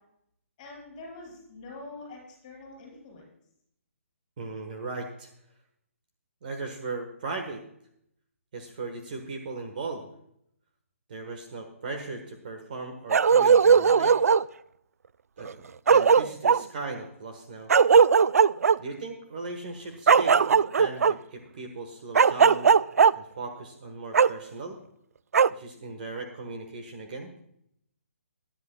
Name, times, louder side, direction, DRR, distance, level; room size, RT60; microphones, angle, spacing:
voice 1, 0.6-3.3, left 2 dB, 20° left, -1 dB, 5.1 m, -45 dB
voice 2, 4.4-5.3 6.4-7.6 8.5-10.1 11.1-14.2 15.4-15.6 15.9-17.7 18.8-22.7 23.1-24.8 25.5-27.3, right 3 dB, 35° right, 4 dB, 1.3 m, -37 dB
Bark, 13.1-14.5 15.5-15.6 15.9-16.6 17.7-18.8 20.1-21.1 22.2-23.1 24.1-24.3 25.3-25.5, right 6 dB, 90° right, 0.3 m, -18 dB
20.0 x 10.5 x 2.3 m, 0.73 s
hypercardioid pair, 175°, 8 cm